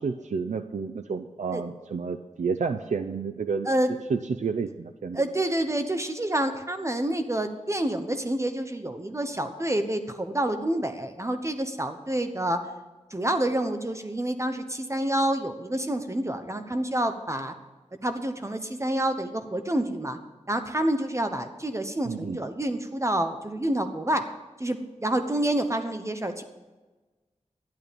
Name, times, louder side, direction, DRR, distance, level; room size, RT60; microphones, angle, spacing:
voice 1, 0.0-3.7 4.1-5.2 22.1-22.4, right 5 dB, 75° right, 8 dB, 0.6 m, -30 dB
voice 2, 5.1-12.6 13.1-17.5 18.0-20.2 20.5-24.2 24.6-26.4, right 1 dB, 25° right, 8 dB, 0.9 m, -28 dB
12.5 x 11.0 x 5.2 m, 1.2 s
wide cardioid pair, 75°, 12 cm